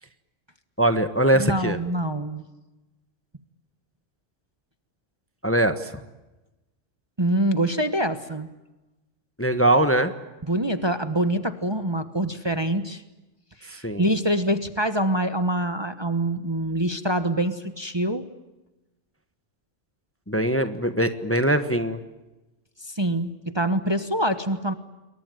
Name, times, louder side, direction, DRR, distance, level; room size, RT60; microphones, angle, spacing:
voice 1, 0.8-1.8 5.4-5.9 9.4-10.1 13.7-14.0 20.3-22.0, right 1 dB, 10° left, 9 dB, 1.2 m, -22 dB
voice 2, 1.3-2.4 7.2-8.5 10.5-13.0 13.6-18.3 22.8-24.7, right 1 dB, 20° right, 9 dB, 1.2 m, -25 dB
28.5 x 22.5 x 9.2 m, 1.1 s
omnidirectional pair, 1.3 m